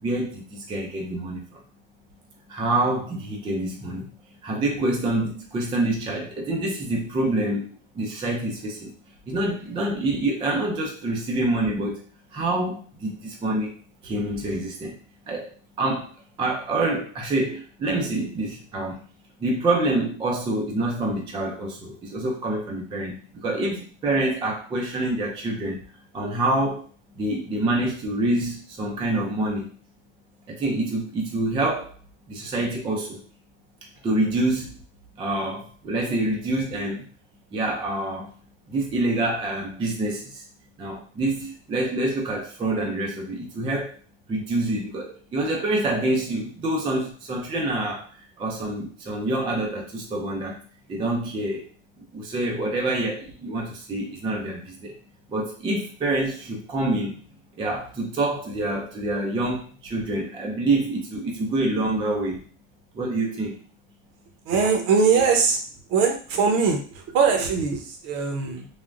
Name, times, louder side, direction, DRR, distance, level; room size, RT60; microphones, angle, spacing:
voice 1, 0.0-1.6 2.5-4.1 4.4-7.7 7.9-8.9 9.3-12.0 12.3-13.7 14.0-14.9 15.3-15.5 15.8-16.1 16.4-19.0 19.4-25.8 26.1-26.8 27.2-29.7 30.5-31.9 32.3-33.2 34.0-34.7 35.2-37.1 37.5-38.3 38.7-40.4 40.8-43.9 44.3-48.1 48.4-50.6 50.9-51.7 52.0-54.9 55.3-57.2 57.6-62.4 62.9-63.5, right 2 dB, 15° right, 0 dB, 0.3 m, -26 dB
voice 2, 64.5-65.6 65.9-68.7, right 5 dB, 60° right, 3 dB, 0.8 m, -21 dB
3.3 x 2.1 x 2.5 m, 0.41 s
cardioid pair, 140°, 38 cm